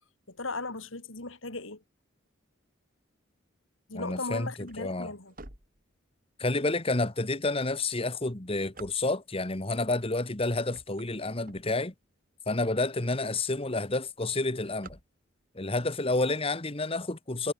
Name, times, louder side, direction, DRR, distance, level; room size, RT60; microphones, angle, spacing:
voice 1, 0.3-1.8 3.9-5.3, left 3 dB, 85° left, 4.4 m, -37 dB
voice 2, 3.9-5.1 6.4-11.9 12.5-15.0 15.5-17.5, left 2 dB, 30° left, 1.5 m, -29 dB
sound 1, 4.6-6.4 7.0-7.1 7.8-9.5 10.1-10.3 10.6-12.2 12.7-12.8 13.0-13.1 13.4-13.7 14.0-15.6, right 2 dB, 45° right, 5.6 m, -51 dB
head